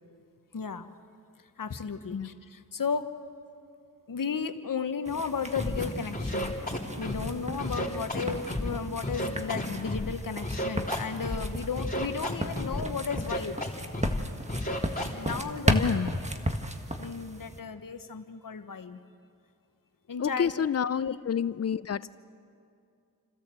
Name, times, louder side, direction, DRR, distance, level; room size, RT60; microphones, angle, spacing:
voice 1, 0.5-0.9 1.6-3.1 4.1-6.6 7.0-13.6 15.0-16.0 17.0-19.0 20.1-20.7 21.0-21.2, left 5 dB, 70° left, 10 dB, 1.1 m, -34 dB
sound 1, 5.0-17.6, right 1 dB, 20° right, 1.6 m, -35 dB
Scratching (performance technique), 5.5-5.8 6.1-7.3 7.6-8.7 9.0-10.1 10.4-11.5 11.8-12.8 13.1-13.7 13.9-14.2 14.5-15.3, left 1 dB, 25° left, 3.8 m, -32 dB
voice 2, 15.7-16.1 20.2-22.1, left 7 dB, 45° left, 17 dB, 0.6 m, -28 dB
29.0 x 13.0 x 7.6 m, 2.5 s
cardioid pair, 45°, 34 cm